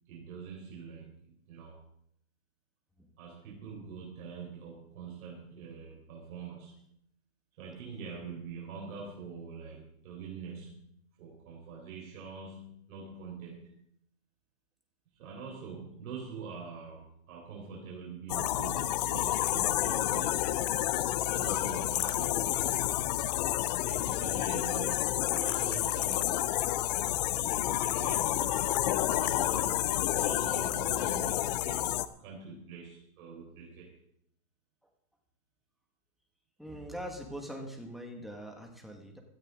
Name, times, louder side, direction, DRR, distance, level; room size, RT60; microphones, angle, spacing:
voice 1, 0.1-1.8 3.2-6.8 7.6-10.9 11.2-13.8 15.2-20.5 21.3-22.9 23.7-26.4 27.4-31.9 32.2-34.0, right 5 dB, 60° right, -2 dB, 4.5 m, -44 dB
sound 1, 18.3-32.1, left 13 dB, 30° left, 0.4 m, -30 dB
voice 2, 36.6-39.2, equal, ahead, 1 dB, 2.0 m, -42 dB
17.0 x 13.5 x 4.0 m, 0.74 s
hypercardioid pair, 145°, 46 cm